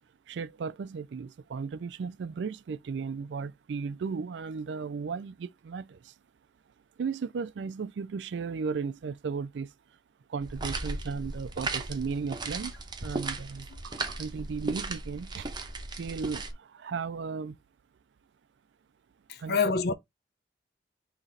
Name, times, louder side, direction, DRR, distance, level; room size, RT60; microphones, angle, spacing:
voice 1, 0.3-6.1 7.0-9.7 10.3-12.7 13.0-15.5 16.0-17.6 19.4-19.7, right 5 dB, 85° right, 0.4 m, -35 dB
sound 1, 10.4-16.5, right 3 dB, 25° right, 0.7 m, -36 dB
voice 2, 19.3-19.9, left 5 dB, 60° left, 0.7 m, -27 dB
3.9 x 3.0 x 3.9 m
head